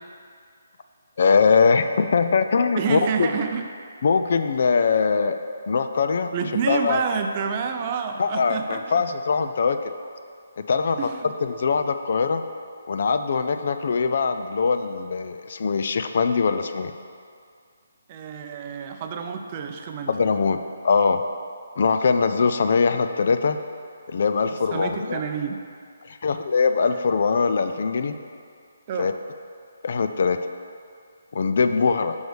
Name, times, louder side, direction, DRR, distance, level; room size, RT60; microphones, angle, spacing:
voice 1, 1.2-3.3 4.0-5.4 5.7-6.3 6.7-7.0 8.2-9.8 10.6-12.4 12.9-16.9 20.1-20.6 20.8-21.2 21.8-23.6 24.1-25.2 26.1-28.2 29.0-29.1 29.8-30.4 31.3-32.2, left 5 dB, 55° left, 9 dB, 0.4 m, -22 dB
voice 2, 2.8-3.7 6.3-9.0 11.0-11.3 18.1-20.1 24.7-25.6 28.9-29.1, right 6 dB, 30° right, 5 dB, 0.5 m, -28 dB
5.4 x 4.7 x 6.3 m, 2.2 s
hypercardioid pair, 155°, 0 cm